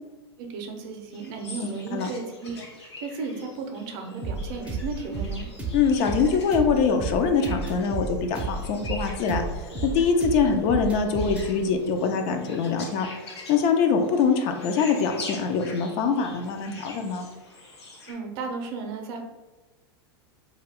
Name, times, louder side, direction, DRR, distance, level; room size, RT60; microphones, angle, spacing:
voice 1, 0.4-5.5 18.1-19.2, right 4 dB, 55° right, 3 dB, 0.6 m, -34 dB
sound 1, 1.1-18.1, left 2 dB, 85° left, 0.7 m, -44 dB
sound 2, 4.2-11.5, right 3 dB, 10° right, 0.5 m, -32 dB
voice 2, 5.7-17.3, left 5 dB, 45° left, 5 dB, 0.4 m, -24 dB
2.3 x 2.2 x 3.4 m, 1.2 s
hypercardioid pair, 105°, 13 cm